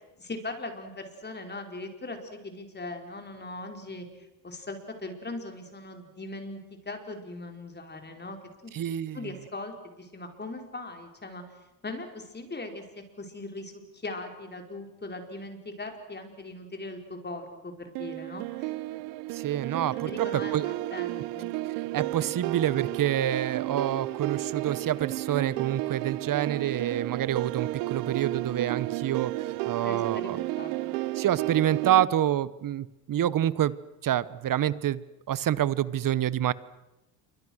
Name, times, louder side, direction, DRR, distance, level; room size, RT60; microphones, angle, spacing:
voice 1, 0.2-8.4 8.6-8.7 9.1-11.4 11.8-18.7 20.0-21.5 22.3-22.4 29.8-30.7, left 2 dB, 20° left, 5 dB, 4.8 m, -40 dB
voice 2, 8.7-9.2 19.3-20.3 20.5-20.7 21.9-30.4 31.2-33.7 34.0-36.5, right 11 dB, 40° right, 18 dB, 1.1 m, -27 dB
sound 1, 17.9-32.1, right 19 dB, 85° right, 0.9 m, -32 dB
28.5 x 24.5 x 6.4 m, 0.97 s
supercardioid pair, 100°, 49 cm